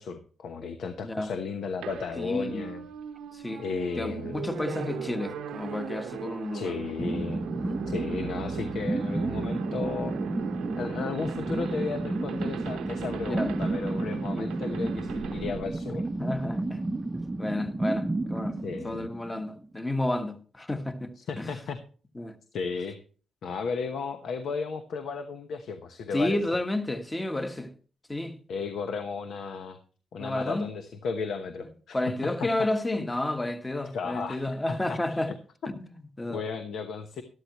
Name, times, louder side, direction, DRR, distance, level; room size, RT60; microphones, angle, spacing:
voice 1, 0.0-2.8 3.6-4.4 6.5-7.4 7.9-10.1 10.8-16.1 18.6-19.1 21.2-21.8 22.5-23.0 23.4-26.4 28.5-29.8 30.1-32.0 33.9-35.2 36.3-37.2, left 5 dB, 75° left, 1.0 m, -34 dB
sound 1, 1.8-16.6, right 8 dB, 90° right, 0.8 m, -39 dB
voice 2, 2.2-2.7 3.3-3.6 4.0-6.8 7.6-7.8 13.2-13.6 14.3-14.5 16.2-16.8 17.4-21.6 22.1-22.4 26.1-27.7 28.1-28.4 30.2-30.7 31.9-35.3 35.8-36.4, left 1 dB, 20° left, 1.4 m, -31 dB
sound 2, 7.0-19.7, right 2 dB, 20° right, 0.7 m, -32 dB
12.5 x 12.5 x 3.0 m
cardioid pair, 70°, 0 cm